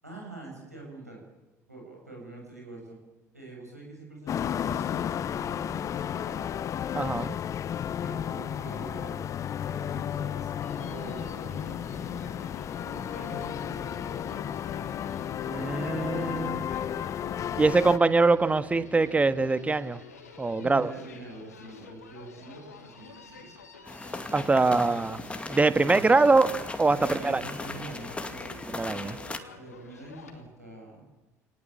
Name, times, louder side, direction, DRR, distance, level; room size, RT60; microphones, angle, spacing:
voice 1, 0.0-1.2 1.7-3.0 3.3-6.5 8.0-9.2 9.6-12.2 12.8-14.5 20.6-23.5 25.9-26.3 26.9-28.7 29.6-31.0, right 2 dB, 90° right, -1 dB, 7.6 m, -45 dB
sound 1, 4.3-18.0, left 9 dB, 40° left, 0.9 m, -33 dB
voice 2, 6.9-7.3 15.5-16.6 17.6-20.0 20.4-20.9 24.3-25.2 25.5-26.5 26.8-27.4 28.7-29.2, right 3 dB, 15° right, 13 dB, 1.6 m, -23 dB
Human voice, 10.6-30.4, left 5 dB, 80° left, 2.7 m, -48 dB
sound 2, 23.9-29.4, left 2 dB, 15° left, 2.4 m, -38 dB
28.5 x 19.0 x 8.7 m, 1.1 s
figure-of-eight pair, 60°, 8 cm